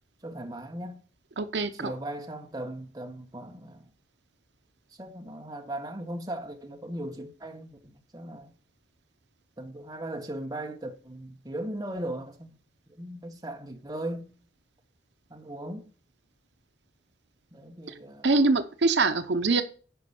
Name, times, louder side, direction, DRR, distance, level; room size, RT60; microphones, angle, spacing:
voice 1, 0.2-1.0 1.7-3.9 5.0-8.5 9.6-12.5 13.0-14.3 15.3-15.9 17.5-18.3, right 1 dB, 20° right, 1.4 m, -38 dB
voice 2, 1.4-1.9 18.2-19.6, right 3 dB, 70° right, 0.8 m, -24 dB
10.5 x 5.2 x 7.0 m
head